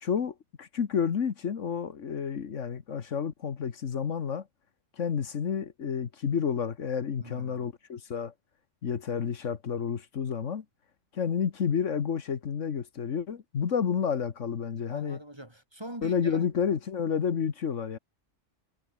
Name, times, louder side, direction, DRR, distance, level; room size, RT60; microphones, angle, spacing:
voice 1, 0.0-4.4 5.0-8.3 8.8-10.6 11.1-15.2 16.0-18.0, left 7 dB, 75° left, 1.6 m, -30 dB
voice 2, 7.2-7.7 14.9-16.4, right 1 dB, 20° right, 3.9 m, -43 dB
omnidirectional pair, 1.3 m